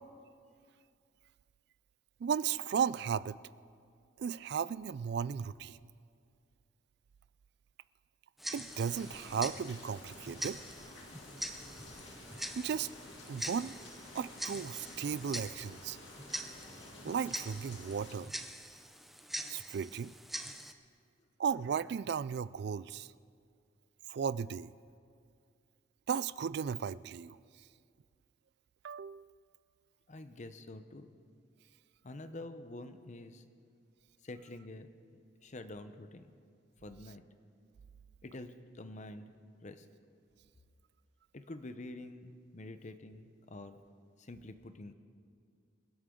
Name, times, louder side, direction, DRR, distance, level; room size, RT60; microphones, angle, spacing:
voice 1, 2.2-3.4 4.2-5.8 8.5-10.6 12.6-12.9 13.3-13.7 14.1-16.0 17.0-18.3 19.5-20.1 21.4-23.1 24.1-24.7 26.1-27.4 28.8-29.3, right 7 dB, 55° right, 19 dB, 0.3 m, -35 dB
Tick-tock, 8.4-20.7, equal, ahead, 0.5 m, -44 dB
sound 1, 8.7-18.2, left 2 dB, 70° left, 2.4 m, -51 dB
voice 2, 30.1-31.2 32.0-33.4 34.2-34.9 35.4-36.3 36.8-37.2 38.2-39.3 39.6-39.9 41.3-43.8 44.2-44.9, left 2 dB, 40° left, 10 dB, 0.7 m, -47 dB
27.0 x 11.0 x 3.8 m, 2.2 s
head